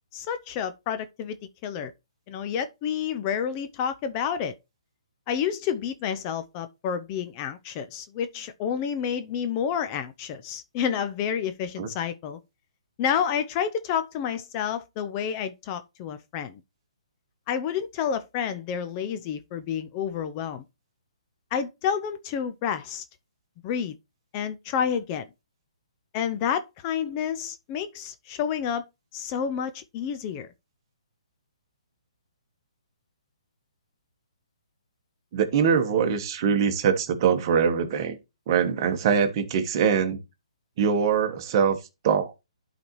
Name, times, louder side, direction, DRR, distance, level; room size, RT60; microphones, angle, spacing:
voice 1, 0.1-1.9 2.3-4.5 5.3-12.4 13.0-16.6 17.5-20.6 21.5-23.0 23.6-23.9 24.3-25.3 26.1-28.9 29.1-30.5, left 8 dB, 25° left, 0.5 m, -29 dB
voice 2, 35.3-38.2 38.5-40.2 40.8-41.8 42.0-42.3, right 7 dB, 35° right, 1.3 m, -23 dB
11.5 x 4.0 x 3.1 m
hypercardioid pair, 155°, 4 cm